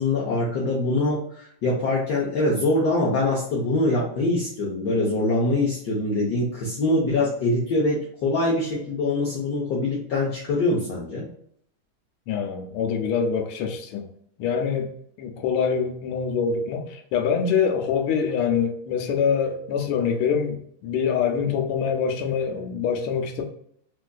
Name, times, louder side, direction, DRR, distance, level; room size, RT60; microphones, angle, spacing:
voice 1, 0.0-11.3, left 2 dB, 65° left, 1.1 m, -24 dB
voice 2, 12.3-14.1 14.4-14.9 15.2-23.4, left 6 dB, 85° left, 1.5 m, -25 dB
4.6 x 2.5 x 2.2 m
omnidirectional pair, 2.3 m